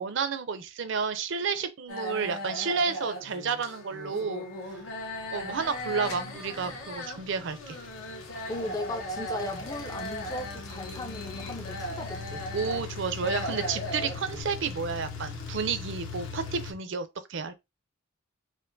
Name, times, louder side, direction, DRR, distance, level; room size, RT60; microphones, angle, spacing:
voice 1, 0.0-4.5 5.3-7.8 12.5-17.6, right 5 dB, 60° right, 0.5 m, -31 dB
sound 1, 1.9-14.4, equal, 80° left, 1.2 m, -38 dB
sound 2, 4.8-16.7, left 4 dB, 65° left, 1.0 m, -41 dB
voice 2, 8.5-12.5 14.0-14.1, left 2 dB, 15° left, 0.4 m, -37 dB
4.4 x 2.5 x 2.6 m
head